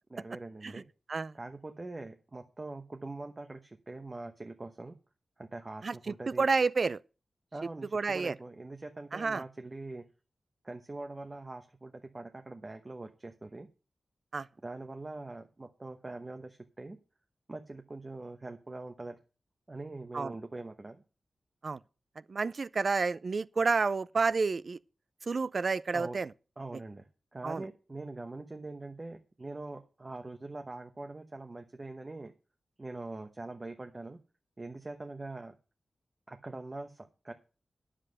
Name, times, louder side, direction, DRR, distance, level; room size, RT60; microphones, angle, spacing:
voice 1, 0.1-0.9 1.3-4.9 5.4-6.5 7.5-10.1 10.6-13.7 14.6-17.0 17.5-19.2 19.7-21.0 25.9-26.2 26.6-32.3 32.8-34.2 34.6-35.5 36.3-37.3, right 2 dB, 30° right, 1.0 m, -43 dB
voice 2, 6.4-7.0 7.9-8.3 9.1-9.4 14.3-14.5 20.1-20.3 21.6-21.8 22.3-24.8 25.3-26.3 27.4-27.6, right 4 dB, 50° right, 0.4 m, -29 dB
10.0 x 7.6 x 6.5 m
wide cardioid pair, 120°, 0 cm